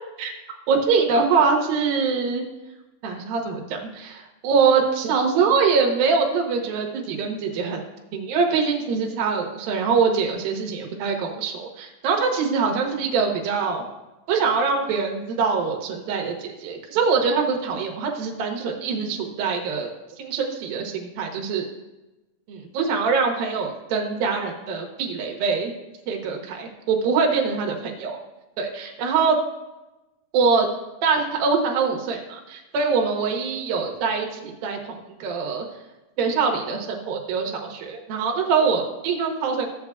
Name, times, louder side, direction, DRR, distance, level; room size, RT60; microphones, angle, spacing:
voice 1, 0.7-2.4 3.0-7.8 8.1-13.8 14.3-21.7 22.5-25.7 26.1-27.8 28.0-28.2 28.6-29.4 30.3-30.7 31.0-35.6 36.2-39.7, right 5 dB, 80° right, 1 dB, 2.9 m, -23 dB
15.5 x 8.3 x 2.3 m, 1.0 s
omnidirectional pair, 4.1 m